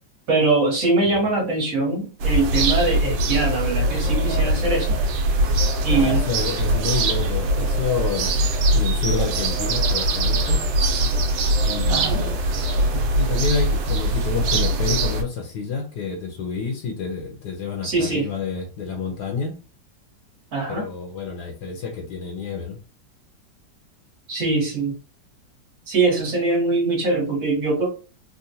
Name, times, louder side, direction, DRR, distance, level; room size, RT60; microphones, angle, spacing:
voice 1, 0.3-4.9 5.8-6.2 11.9-12.2 17.8-18.3 20.5-20.8 24.3-24.9 25.9-27.9, right 3 dB, 50° right, -2 dB, 1.4 m, -22 dB
sound 1, 2.2-15.2, right 1 dB, 75° right, 1.3 m, -22 dB
voice 2, 5.9-8.5 8.7-10.6 11.6-12.4 12.9-19.5 20.7-22.8, left 5 dB, 70° left, 3 dB, 1.2 m, -29 dB
3.8 x 2.2 x 2.7 m, 0.34 s
omnidirectional pair, 2.0 m